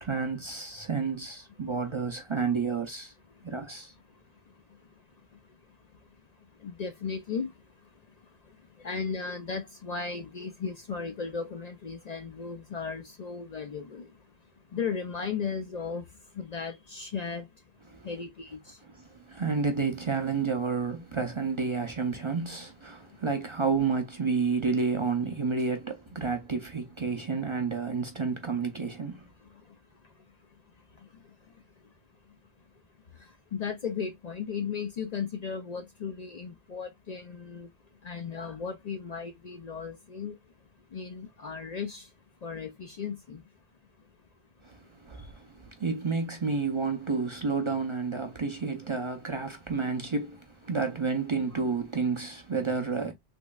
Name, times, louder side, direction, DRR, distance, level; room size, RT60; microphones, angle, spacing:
voice 1, 0.0-3.1 3.4-3.9 17.9-18.1 19.1-29.3 44.6-53.1, right 4 dB, 40° right, 0.4 m, -30 dB
voice 2, 6.6-7.5 8.8-14.1 14.7-16.0 16.4-17.5 18.0-18.8 33.5-37.7 38.0-40.4 40.9-42.1 42.4-43.4 51.5-51.6, left 5 dB, 55° left, 0.5 m, -35 dB
3.6 x 3.0 x 2.2 m
omnidirectional pair, 1.2 m